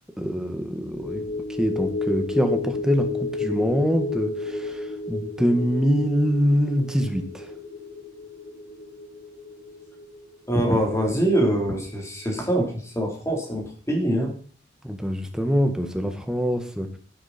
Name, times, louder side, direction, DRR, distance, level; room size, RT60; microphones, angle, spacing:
voice 1, 0.2-1.2 1.6-7.5 14.8-17.0, equal, 5° right, 5 dB, 1.6 m, -24 dB
sound 1, 0.9-11.5 11.9-12.0, left 3 dB, 45° left, 2.1 m, -32 dB
voice 2, 10.5-14.3, right 1 dB, 15° left, 0 dB, 3.8 m, -24 dB
11.5 x 11.0 x 4.4 m, 0.43 s
head